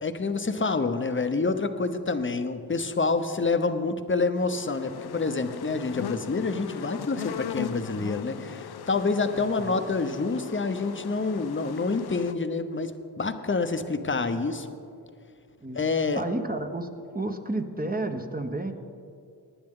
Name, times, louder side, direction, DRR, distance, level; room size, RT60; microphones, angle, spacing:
voice 1, 0.0-14.7 15.7-16.2, left 3 dB, 30° left, 9 dB, 0.9 m, -27 dB
sound 1, 4.4-12.3, left 10 dB, 70° left, 0.5 m, -39 dB
voice 2, 9.3-9.8 11.2-11.3 14.1-14.4 15.6-15.8 16.1-16.9 17.1-18.7, right 2 dB, 20° right, 5 dB, 1.1 m, -32 dB
19.5 x 9.5 x 3.8 m, 2.4 s
cardioid pair, 50°, 40 cm